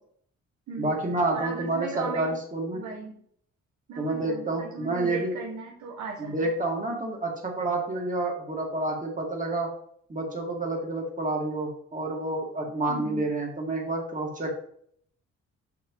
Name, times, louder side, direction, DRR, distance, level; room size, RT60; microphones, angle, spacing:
voice 1, 0.8-2.8 4.0-5.3 6.2-9.7 10.1-14.5, right 2 dB, 25° right, 0 dB, 2.1 m, -29 dB
voice 2, 1.3-2.3 2.7-3.2 3.9-6.5 12.9-13.2, right 4 dB, 70° right, 1 dB, 1.2 m, -37 dB
6.0 x 6.0 x 3.2 m, 0.64 s
cardioid pair, 90°, 30 cm